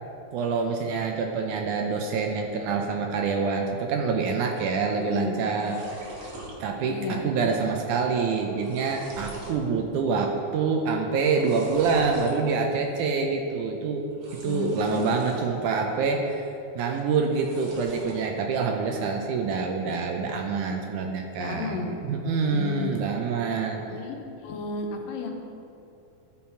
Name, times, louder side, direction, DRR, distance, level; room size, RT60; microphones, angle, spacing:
voice 1, 0.3-5.8 6.6-14.1 14.3-16.4 16.8-23.8, right 5 dB, 75° right, 2 dB, 1.9 m, -26 dB
voice 2, 5.0-5.5 6.9-7.3 14.4-15.1 21.4-21.9 22.5-23.0 23.8-25.3, left 5 dB, 85° left, 3 dB, 2.6 m, -33 dB
sound 1, 5.0-5.1 5.3-6.6 7.0-7.4 7.7-7.8 8.3-9.6 10.1-10.5 11.3-12.3 14.1-15.5 15.9-16.5 17.2-18.3, right 1 dB, 60° right, 2.1 m, -43 dB
13.5 x 5.6 x 4.4 m, 2.9 s
omnidirectional pair, 4.0 m